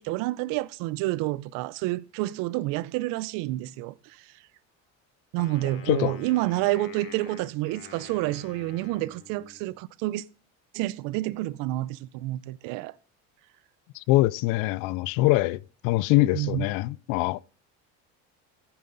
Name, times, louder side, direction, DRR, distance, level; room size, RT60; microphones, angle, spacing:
voice 1, 0.0-4.3 5.3-10.2 10.7-12.9 16.3-16.7, right 17 dB, 75° right, 0.7 m, -29 dB
Wind instrument woodwind instrument, 5.3-9.8, left 5 dB, 35° left, 2.1 m, -48 dB
voice 2, 5.9-6.2 13.9-17.4, left 18 dB, 70° left, 0.5 m, -24 dB
14.5 x 8.8 x 4.0 m
cardioid pair, 155°, 34 cm